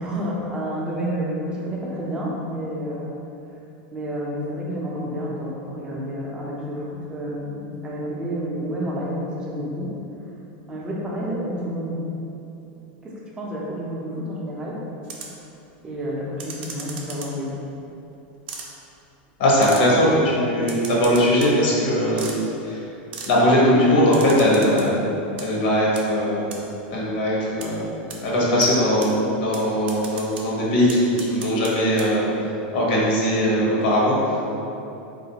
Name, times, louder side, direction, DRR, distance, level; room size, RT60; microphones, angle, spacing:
voice 1, 0.0-3.1 3.9-9.9 10.7-12.0 13.0-14.8 15.8-17.5, equal, 15° right, -5 dB, 0.5 m, -29 dB
sound 1, 15.0-15.4 16.4-17.5 18.5-18.7 19.6-19.9 20.6-21.5 22.2-22.4 23.1-23.3 24.1-24.9 25.2-25.5 26.0-26.1 26.5-26.6 27.6-27.7 28.1-28.2 28.6-28.7 29.0-29.1 29.5-29.6 29.9-30.4 30.9-31.7 32.0-32.1, right 5 dB, 70° right, 0.5 m, -36 dB
voice 2, 19.4-22.4 22.6-22.8 23.3-25.0 25.4-26.4 26.9-27.9 28.2-34.4, equal, 65° left, -5 dB, 1.0 m, -20 dB
3.5 x 2.4 x 2.8 m, 2.8 s
supercardioid pair, 155°, 6 cm